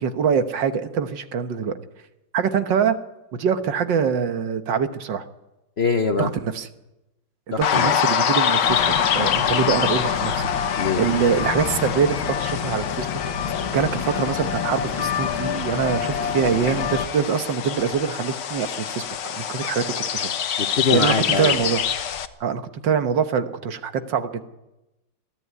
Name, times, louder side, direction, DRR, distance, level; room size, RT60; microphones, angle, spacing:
voice 1, 0.0-1.8 2.3-3.0 3.3-5.2 6.2-6.7 7.6-8.8 9.1-10.5 11.0-13.1 13.7-19.0 19.4-20.3 20.9-21.8 22.4-24.5, right 7 dB, 70° right, 9 dB, 1.8 m, -24 dB
voice 2, 5.8-6.3 7.5-8.0 10.8-11.0 20.6-21.6, left 4 dB, 45° left, 7 dB, 1.0 m, -23 dB
sound 1, 7.6-22.3, left 8 dB, 65° left, 1.5 m, -26 dB
sound 2, 8.6-17.1, left 7 dB, 85° left, 2.0 m, -28 dB
21.5 x 14.0 x 9.7 m, 0.98 s
omnidirectional pair, 2.1 m